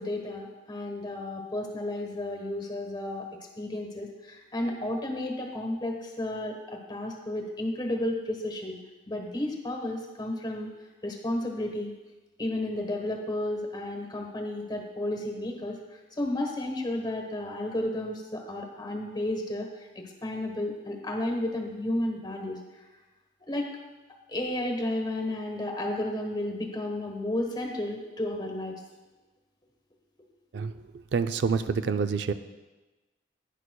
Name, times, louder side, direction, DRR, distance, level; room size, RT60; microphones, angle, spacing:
voice 1, 0.0-3.2 3.6-8.8 9.1-10.7 11.0-11.9 12.4-15.8 16.2-19.7 19.9-22.6 23.5-23.7 24.3-28.7, left 1 dB, 25° left, 2 dB, 1.2 m, -32 dB
voice 2, 31.1-32.3, right 5 dB, 70° right, 10 dB, 0.4 m, -27 dB
11.0 x 10.0 x 2.3 m, 1.2 s
head